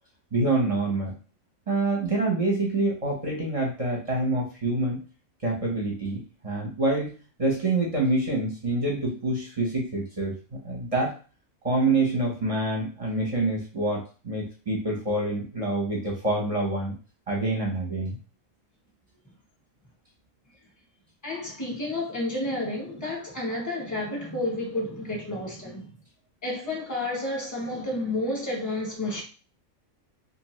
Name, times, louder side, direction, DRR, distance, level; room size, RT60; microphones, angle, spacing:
voice 1, 0.3-1.1 1.7-5.0 5.4-7.1 7.4-10.3 10.6-11.2 11.6-16.9 17.3-18.2, right 2 dB, 35° right, 0.7 m, -26 dB
voice 2, 21.2-25.9 26.4-29.2, left 1 dB, 15° left, 1.0 m, -30 dB
2.7 x 2.5 x 3.0 m
omnidirectional pair, 1.5 m